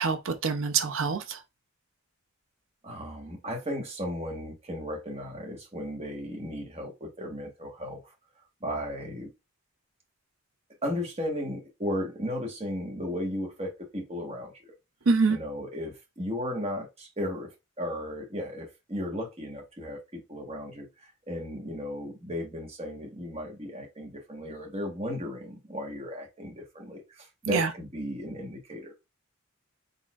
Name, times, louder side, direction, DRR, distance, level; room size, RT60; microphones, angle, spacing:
voice 1, 0.0-1.4 15.1-15.4 27.5-27.7, right 4 dB, 65° right, 0.6 m, -25 dB
voice 2, 2.8-8.0 8.6-9.3 10.8-14.5 15.3-17.5 17.8-28.9, equal, 30° right, 1.3 m, -35 dB
4.0 x 3.5 x 2.4 m
head